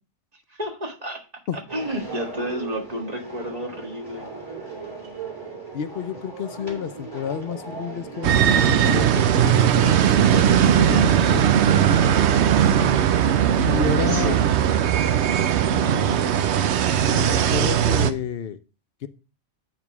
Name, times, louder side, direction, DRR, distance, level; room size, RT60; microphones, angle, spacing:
voice 1, 0.5-1.2 1.5-4.3 14.0-14.6, equal, 35° right, 2 dB, 1.7 m, -31 dB
sound 1, 1.7-11.2, right 3 dB, 20° right, 2.4 m, -38 dB
voice 2, 5.7-11.6 13.6-14.3 15.6-16.2 17.1-18.6 19.0-19.1, left 8 dB, 60° left, 12 dB, 0.8 m, -30 dB
sound 2, 8.2-18.1, right 9 dB, 75° right, 0.9 m, -19 dB
9.0 x 3.5 x 5.9 m, 0.33 s
omnidirectional pair, 1.2 m